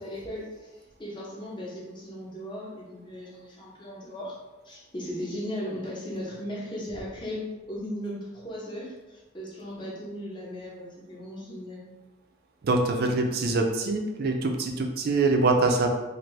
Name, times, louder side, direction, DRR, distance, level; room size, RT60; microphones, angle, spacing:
voice 1, 0.0-4.4 4.6-11.9 15.6-15.8, equal, 25° left, -5 dB, 0.7 m, -37 dB
voice 2, 12.6-15.9, right 3 dB, 50° right, 3 dB, 0.4 m, -24 dB
2.6 x 2.5 x 3.2 m, 1.1 s
head